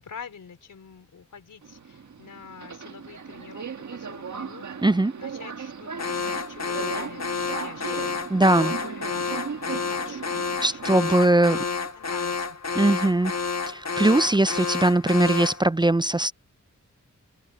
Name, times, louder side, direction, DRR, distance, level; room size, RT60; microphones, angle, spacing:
voice 1, 0.0-4.7 5.2-12.6, left 6 dB, 90° left, 4.9 m, -45 dB
Subway metro underground, 1.6-11.2, right 6 dB, 70° right, 1.7 m, -37 dB
voice 2, 4.8-5.1 8.3-8.7 10.6-11.6 12.7-13.3 13.6-16.3, right 2 dB, 15° right, 0.5 m, -20 dB
Alarm, 6.0-15.7, left 5 dB, 60° left, 1.5 m, -30 dB
cardioid pair, 55°, 30 cm